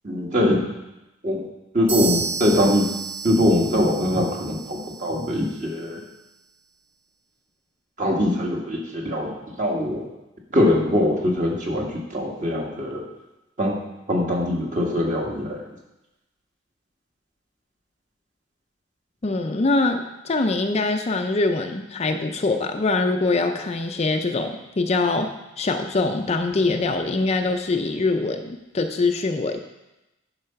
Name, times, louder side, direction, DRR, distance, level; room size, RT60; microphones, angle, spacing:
voice 1, 0.0-0.6 1.2-1.4 1.7-2.9 3.2-6.0 8.0-9.3 9.6-10.0 10.5-13.0 13.6-13.8 14.1-15.6, left 1 dB, 40° right, -1 dB, 1.7 m, -22 dB
sound 1, 1.9-5.6, right 5 dB, 80° right, 1.3 m, -32 dB
voice 2, 19.2-29.6, left 3 dB, 35° left, 6 dB, 0.5 m, -23 dB
9.7 x 4.9 x 5.7 m, 0.98 s
head